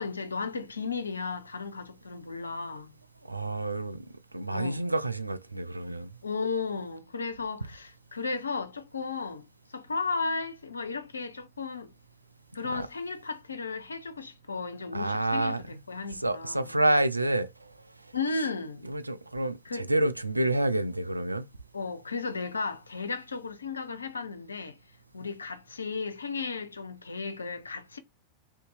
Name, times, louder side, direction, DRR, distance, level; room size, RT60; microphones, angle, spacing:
voice 1, 0.0-2.9 4.5-4.8 6.2-9.4 9.7-11.9 12.5-16.7 18.1-18.8 19.7-19.9 21.7-24.8 25.1-28.0, left 4 dB, 75° left, 0.5 m, -34 dB
voice 2, 3.3-4.1 4.3-6.1 12.6-12.9 14.9-15.8 16.1-17.7 18.8-21.4, right 1 dB, 85° right, 0.3 m, -28 dB
2.7 x 2.6 x 4.0 m
figure-of-eight pair, 90°, 0 cm